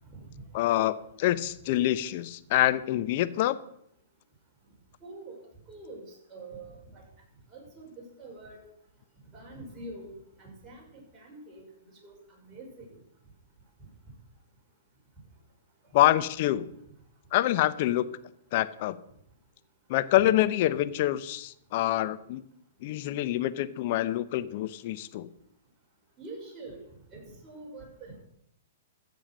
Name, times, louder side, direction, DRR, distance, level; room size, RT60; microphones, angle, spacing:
voice 1, 0.5-3.6 15.9-16.7 17.3-18.0 18.5-19.0 19.9-22.4 22.8-25.3, left 14 dB, 50° left, 14 dB, 0.7 m, -26 dB
voice 2, 5.0-5.4 5.7-7.0 7.5-8.6 9.3-12.9 26.2-26.8 27.1-28.1, right 2 dB, 20° right, -3 dB, 5.7 m, -45 dB
14.5 x 7.2 x 6.1 m, 0.74 s
hypercardioid pair, 120°, 0 cm